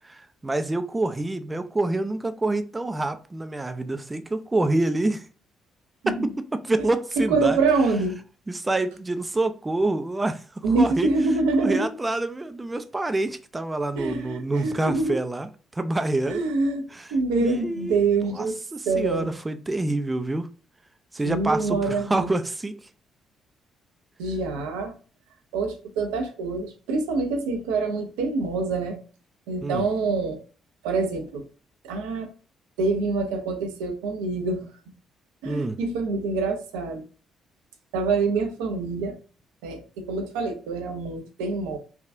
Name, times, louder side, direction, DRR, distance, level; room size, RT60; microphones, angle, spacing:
voice 1, 0.4-5.2 6.1-7.6 8.5-11.1 11.6-16.4 16.9-17.1 17.4-18.0 18.3-18.5 18.7-20.5 21.1-22.8 29.6-29.9 35.5-35.8, right 2 dB, 20° right, 0.4 m, -27 dB
voice 2, 7.2-8.2 10.6-11.9 14.0-15.2 16.3-16.9 17.1-18.6 18.9-19.3 21.2-22.3 24.2-24.9 25.5-29.0 29.5-30.4 30.8-31.4 31.8-32.3 32.8-34.6 35.4-37.0 37.9-39.2 39.6-41.8, right 3 dB, 75° right, 0.5 m, -25 dB
3.5 x 2.3 x 2.5 m
hypercardioid pair, 45°, 0 cm